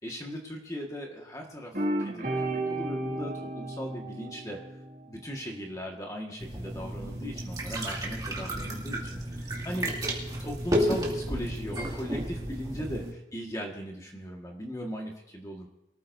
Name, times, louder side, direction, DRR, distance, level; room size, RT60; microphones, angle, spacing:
voice 1, 0.0-4.6 5.1-10.0 10.4-15.7, equal, 20° left, 0 dB, 1.6 m, -38 dB
sound 1, 1.7-5.2, right 1 dB, 45° right, 2.3 m, -33 dB
sound 2, 6.4-13.1, equal, 20° right, 2.2 m, -32 dB
23.5 x 14.0 x 2.7 m, 0.90 s
head